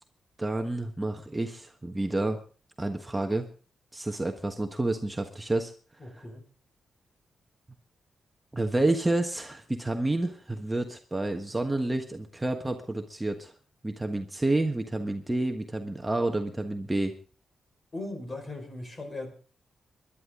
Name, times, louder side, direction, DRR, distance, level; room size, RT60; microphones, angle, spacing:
voice 1, 0.4-2.4 2.8-3.5 3.9-5.7 6.2-6.3 8.5-13.5 13.8-17.1, right 2 dB, 15° right, 4 dB, 1.4 m, -29 dB
voice 2, 6.0-6.4 17.9-19.3, left 2 dB, 35° left, 5 dB, 5.2 m, -38 dB
22.0 x 11.5 x 3.8 m, 0.38 s
cardioid pair, 80°, 0 cm